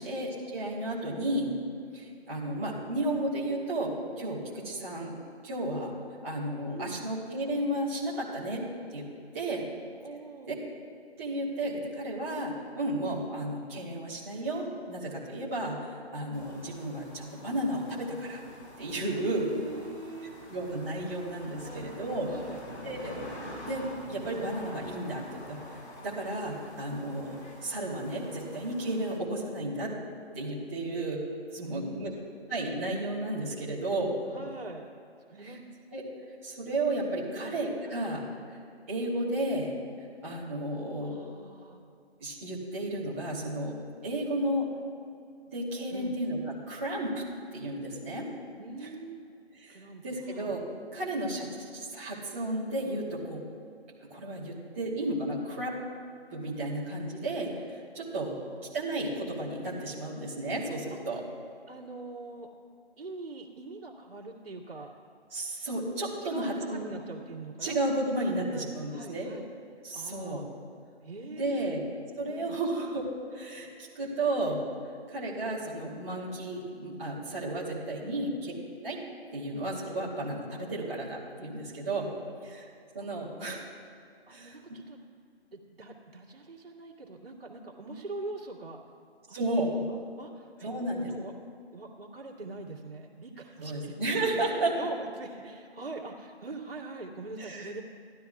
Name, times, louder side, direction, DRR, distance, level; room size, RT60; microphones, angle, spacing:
voice 1, 0.0-1.5 1.9-5.2 5.4-5.9 6.2-8.6 8.9-9.1 9.3-9.6 11.2-18.4 18.8-19.5 20.5-22.3 22.8-23.3 23.7-25.6 26.0-29.9 30.3-31.2 31.5-32.1 32.5-34.4 35.4-35.6 35.9-36.0 36.4-38.3 38.9-39.8 40.2-41.2 42.2-43.8 44.0-44.7 45.5-47.1 47.5-48.3 49.6-50.6 50.9-53.4 54.1-55.7 56.3-58.3 58.7-61.2 65.3-66.9 67.6-69.3 69.8-70.4 71.4-71.8 72.2-73.0 73.3-74.6 75.1-78.5 78.8-79.0 79.3-82.1 82.4-82.7 82.9-83.6 84.3-84.8 89.3-89.7 90.6-91.1 93.6-94.7 97.4-97.7, right 1 dB, 10° right, -10 dB, 1.0 m, -33 dB
voice 2, 6.6-7.1 10.0-10.5 19.1-20.3 21.6-21.9 22.2-22.6 31.6-32.2 34.3-34.8 35.3-35.7 37.3-37.6 41.0-41.8 45.9-46.2 48.6-49.3 49.7-50.5 58.4-58.7 60.9-61.0 61.7-62.5 63.0-64.9 66.2-67.8 68.2-69.5 69.9-70.5 71.0-71.8 72.3-72.6 78.0-78.2 83.2-83.4 84.3-85.0 85.5-88.8 89.3-89.4 89.8-90.7 91.0-91.3 91.7-94.4 94.7-97.8, right 3 dB, 60° right, -3 dB, 2.0 m, -43 dB
sound 1, 16.3-29.2, left 1 dB, 80° left, 2.5 m, -47 dB
17.0 x 12.5 x 2.4 m, 2.5 s
hypercardioid pair, 170°, 33 cm